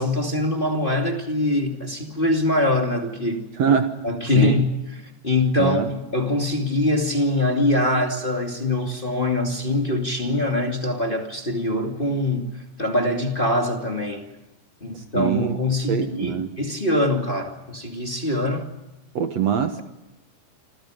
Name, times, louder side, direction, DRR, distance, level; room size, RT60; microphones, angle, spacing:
voice 1, 0.0-3.4 4.0-14.3 14.8-18.7, left 2 dB, 15° left, 2.3 m, -23 dB
voice 2, 3.6-4.0 4.3-4.6 5.6-5.9 15.2-15.6 15.9-16.5 19.2-19.8, right 7 dB, 60° right, 2.2 m, -22 dB
27.5 x 27.0 x 5.0 m
omnidirectional pair, 3.8 m